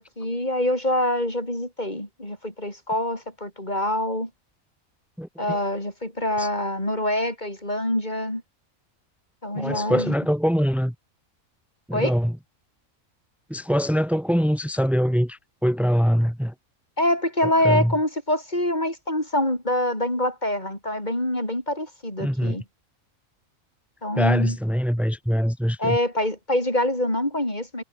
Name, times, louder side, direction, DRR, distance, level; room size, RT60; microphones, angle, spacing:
voice 1, 0.0-4.3 5.4-8.4 9.4-10.1 11.9-12.2 17.0-22.6 24.0-24.6 25.8-27.8, left 1 dB, 35° left, 6.2 m, -25 dB
voice 2, 5.2-5.6 6.4-6.5 9.5-10.9 11.9-12.3 13.5-16.5 17.4-17.9 22.2-22.6 24.2-26.0, equal, ahead, 3.3 m, -23 dB
omnidirectional pair, 1.4 m